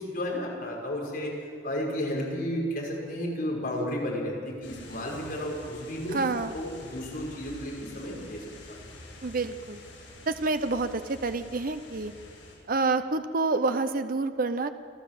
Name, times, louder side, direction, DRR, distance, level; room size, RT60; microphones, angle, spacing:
voice 1, 0.0-1.3 1.6-6.2 6.5-8.8, equal, 50° left, -2 dB, 5.9 m, -33 dB
sound 1, 4.6-12.5, left 2 dB, 85° left, 7.5 m, -48 dB
voice 2, 6.1-6.5 9.2-9.8 10.3-12.1 12.7-14.7, right 3 dB, 50° right, 10 dB, 0.7 m, -28 dB
28.5 x 12.5 x 7.8 m, 2.3 s
head